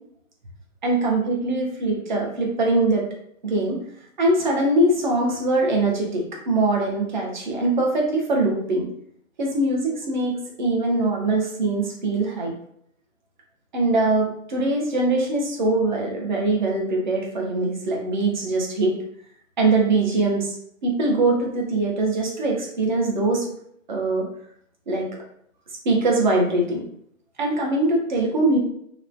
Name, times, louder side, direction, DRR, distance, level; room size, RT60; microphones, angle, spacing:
voice 1, 0.8-3.1 3.4-3.8 4.2-8.9 9.4-12.5 13.7-18.9 19.6-20.6 20.8-23.5 23.9-24.3 24.9-25.1 25.8-26.8 27.4-28.6, right 2 dB, 35° right, -1 dB, 0.5 m, -22 dB
2.9 x 2.1 x 2.5 m, 0.69 s
hypercardioid pair, 145°, 41 cm